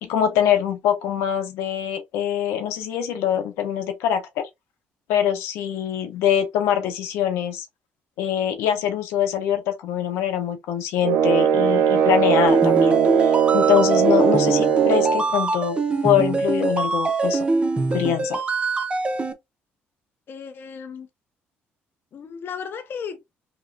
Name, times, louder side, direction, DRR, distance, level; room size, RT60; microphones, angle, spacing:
voice 1, 0.0-4.5 5.1-7.6 8.2-15.8 16.0-17.5 17.9-18.4, left 9 dB, 90° left, 0.7 m, -23 dB
sound 1, 11.0-15.3, right 8 dB, 85° right, 0.5 m, -19 dB
sound 2, 12.5-19.3, right 3 dB, 25° right, 0.7 m, -23 dB
voice 2, 20.3-21.1 22.1-23.3, left 6 dB, 55° left, 0.5 m, -35 dB
3.0 x 2.9 x 2.6 m
cardioid pair, 85°, 4 cm